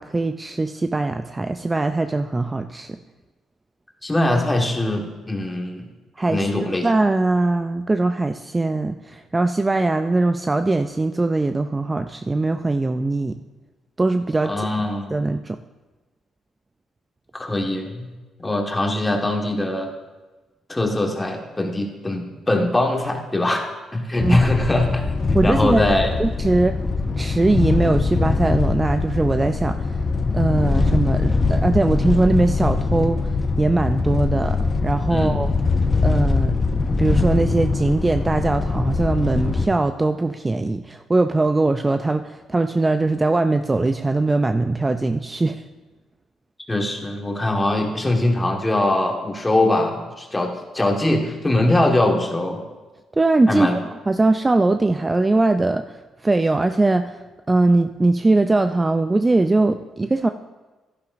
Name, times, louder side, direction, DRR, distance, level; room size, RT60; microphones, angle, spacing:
voice 1, 0.0-3.0 6.2-6.5 6.8-13.4 14.0-14.5 15.1-15.6 24.2-24.4 25.3-25.8 26.2-26.8 27.2-29.9 30.3-33.3 33.6-35.5 36.0-36.6 36.9-45.6 53.2-53.7 54.1-56.0 56.2-57.2 57.5-60.3, right 2 dB, 20° right, 8 dB, 0.4 m, -21 dB
voice 2, 4.0-5.9 6.3-6.9 14.4-15.2 17.3-18.1 18.4-19.9 20.7-23.6 23.9-25.0 25.3-26.1 35.1-35.4 46.7-52.6 53.5-53.8, left 1 dB, 15° left, 2 dB, 1.5 m, -22 dB
sound 1, 24.2-39.7, left 4 dB, 30° left, 0.7 m, -22 dB
11.5 x 10.5 x 2.6 m, 1.2 s
cardioid pair, 90°, 0 cm